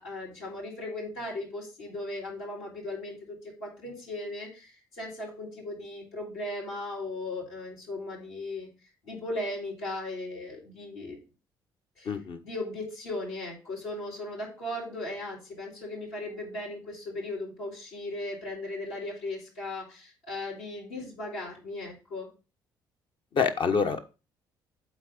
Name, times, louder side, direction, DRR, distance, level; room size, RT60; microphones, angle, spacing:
voice 1, 0.0-8.7 9.0-11.2 12.0-12.2 12.4-22.3, left 2 dB, 70° left, -6 dB, 4.2 m, -37 dB
voice 2, 12.1-12.4 23.3-24.1, left 5 dB, 50° left, 7 dB, 1.2 m, -26 dB
7.9 x 4.1 x 6.5 m, 0.30 s
figure-of-eight pair, 50°, 11 cm